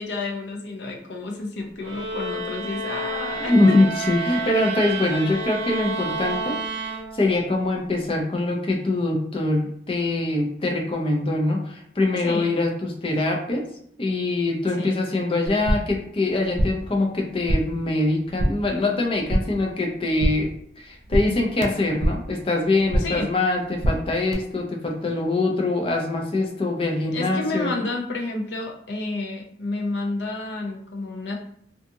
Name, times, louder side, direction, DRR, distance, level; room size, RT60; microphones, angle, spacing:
voice 1, 0.0-3.8 4.2-4.6 12.2-12.5 14.8-15.0 23.0-23.3 27.1-31.4, left 2 dB, 80° left, 1 dB, 0.6 m, -30 dB
sound 1, 1.8-7.5, right 3 dB, 85° right, 0.7 m, -30 dB
voice 2, 3.4-6.6 7.1-13.6 14.0-20.5 20.8-27.7, left 2 dB, 30° left, 1 dB, 0.5 m, -23 dB
sound 2, 15.5-16.0 16.3-16.9 17.2-17.8 18.1-18.7 19.0-19.7 19.9-20.6 20.8-22.3 22.6-23.3 23.5-24.3, equal, 40° right, 0.4 m, -26 dB
2.5 x 2.4 x 2.7 m, 0.68 s
head